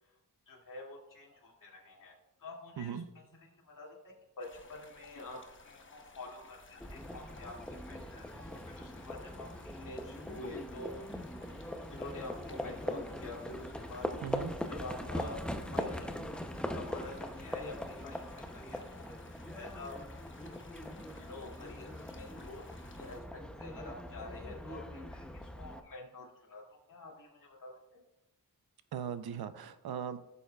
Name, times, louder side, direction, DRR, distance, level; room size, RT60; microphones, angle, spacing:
voice 1, 0.5-2.1 2.4-11.1 11.9-14.1 14.3-15.4 15.7-16.3 16.7-20.0 21.2-22.6 22.9-26.6 26.9-28.0, left 2 dB, 55° left, -4 dB, 2.3 m, -48 dB
sound 1, 4.4-23.2, left 3 dB, 30° left, 0.9 m, -57 dB
Livestock farm animals working animals, 6.8-25.8, left 1 dB, 5° left, 0.6 m, -41 dB
voice 2, 14.2-14.5 28.9-30.2, right 8 dB, 80° right, 11 dB, 0.7 m, -38 dB
15.5 x 7.1 x 2.3 m, 0.93 s
wide cardioid pair, 95°, 37 cm